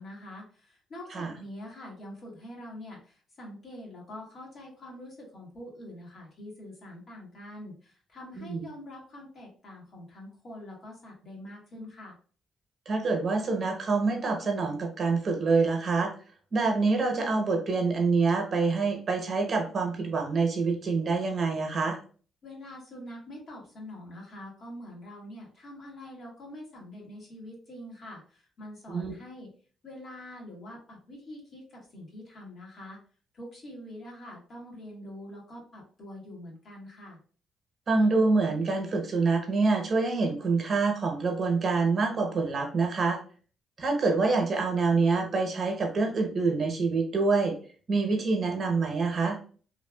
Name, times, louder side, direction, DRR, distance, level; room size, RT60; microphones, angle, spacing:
voice 1, 0.0-12.1 22.4-29.5 29.8-33.0 33.3-37.2, left 1 dB, 50° left, -2 dB, 1.4 m, -45 dB
voice 2, 12.9-16.1 16.5-22.0 28.9-29.2 37.9-43.2 43.8-47.6 47.9-49.4, right 4 dB, 45° right, 2 dB, 0.8 m, -26 dB
3.1 x 2.3 x 2.3 m, 0.41 s
cardioid pair, 90°, 0 cm